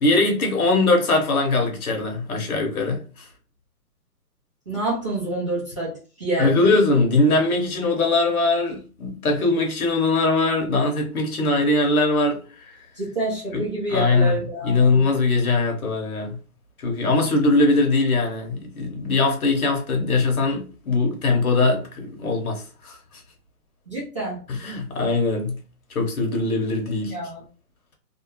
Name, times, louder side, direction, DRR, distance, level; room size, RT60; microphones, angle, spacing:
voice 1, 0.0-3.0 6.4-12.7 13.5-16.4 16.8-23.0 24.5-25.6 25.9-27.2, left 3 dB, 60° left, 1.1 m, -21 dB
voice 2, 4.7-6.5 13.0-15.0 23.9-24.4 27.1-27.4, right 1 dB, 20° right, 0.6 m, -27 dB
2.6 x 2.2 x 2.9 m
hypercardioid pair, 160°, 48 cm